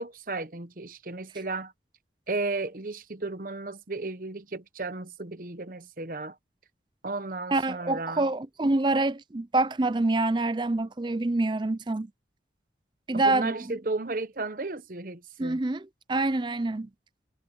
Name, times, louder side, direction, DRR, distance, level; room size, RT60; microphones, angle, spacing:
voice 1, 0.0-1.7 2.3-6.4 7.0-8.3 13.1-15.6, right 3 dB, 50° right, 1.0 m, -34 dB
voice 2, 7.5-12.1 13.1-13.7 15.4-16.9, right 2 dB, 25° right, 0.5 m, -26 dB
head